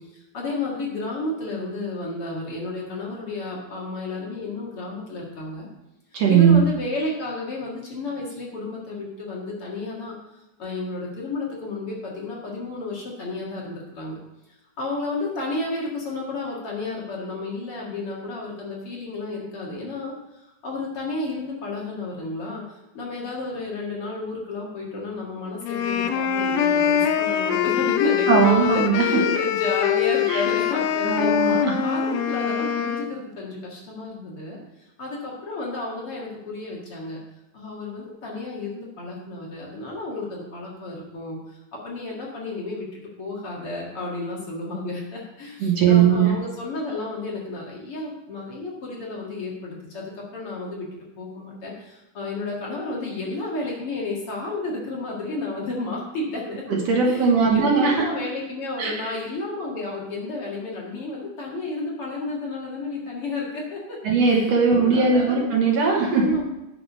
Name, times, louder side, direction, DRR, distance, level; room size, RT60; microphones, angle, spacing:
voice 1, 0.0-5.7 6.3-14.2 14.5-31.3 31.8-34.6 35.0-37.2 37.5-56.6 57.0-65.4 66.0-66.4, left 2 dB, 50° left, -3 dB, 2.5 m, -32 dB
voice 2, 6.1-6.6 28.3-29.2 30.3-30.5 31.0-31.9 45.6-46.4 56.5-58.0 58.8-59.1 64.0-66.4, right 5 dB, 65° right, 0 dB, 2.0 m, -19 dB
sound 1, 25.6-33.1, left 9 dB, 85° left, 2.2 m, -23 dB
8.8 x 6.8 x 5.4 m, 0.93 s
omnidirectional pair, 3.6 m